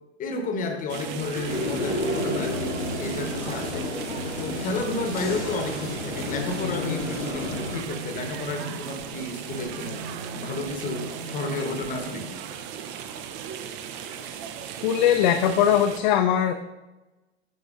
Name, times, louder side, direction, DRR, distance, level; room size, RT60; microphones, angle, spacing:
voice 1, 0.2-4.0 4.3-10.0 10.3-12.4, left 3 dB, 25° left, 5 dB, 1.0 m, -32 dB
sound 1, 0.9-16.0, right 8 dB, 35° right, 0.5 m, -37 dB
sound 2, 1.5-7.8, left 2 dB, 85° left, 0.9 m, -31 dB
sound 3, 1.5-12.2, right 2 dB, 70° right, 0.9 m, -41 dB
voice 2, 14.8-16.5, left 10 dB, 45° left, 6 dB, 0.4 m, -20 dB
11.0 x 3.9 x 2.4 m, 1.1 s
figure-of-eight pair, 95°, 34 cm